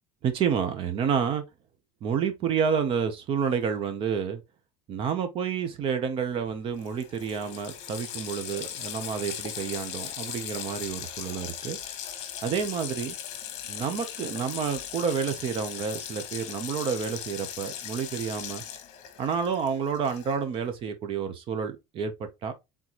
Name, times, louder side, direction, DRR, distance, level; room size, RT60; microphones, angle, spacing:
voice 1, 0.2-1.4 2.0-4.4 4.9-11.8 12.4-13.2 13.7-18.6 19.2-22.5, right 7 dB, 40° right, 0.7 m, -29 dB
Water tap faucet, 6.5-6.6 6.8-20.5, left 10 dB, 50° left, 1.1 m, -38 dB
4.1 x 3.6 x 3.0 m
cardioid pair, 160°, 14 cm